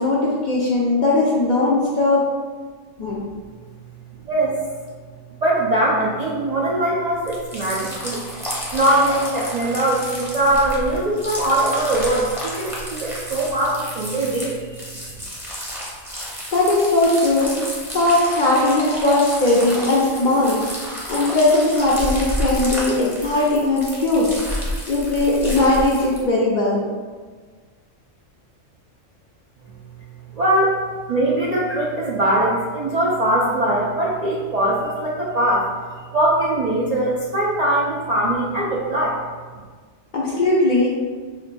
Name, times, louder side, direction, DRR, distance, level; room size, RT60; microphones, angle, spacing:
voice 1, 0.0-2.3 3.0-3.2 16.5-17.6 17.9-20.6 21.1-24.3 24.9-26.8 40.1-40.9, left 2 dB, 55° left, -5 dB, 0.5 m, -18 dB
voice 2, 5.4-8.2 8.7-15.1 30.3-30.8 31.1-35.7 36.1-39.2, right 1 dB, 75° right, -6 dB, 0.3 m, -21 dB
sound 1, 7.2-26.2, equal, 5° right, 0.5 m, -31 dB
4.9 x 2.2 x 2.5 m, 1.5 s
omnidirectional pair, 1.3 m